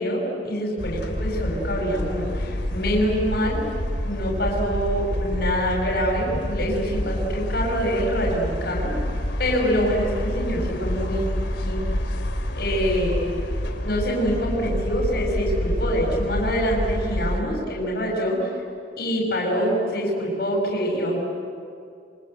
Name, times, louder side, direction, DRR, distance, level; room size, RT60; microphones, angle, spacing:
voice 1, 0.0-3.6 4.0-8.9 9.4-11.3 11.6-11.9 12.5-13.2 13.8-18.5 19.0-21.2, equal, 60° left, -2 dB, 6.5 m, -25 dB
sound 1, 0.8-17.4, equal, 85° left, 3.0 m, -28 dB
28.0 x 26.0 x 8.1 m, 2.4 s
head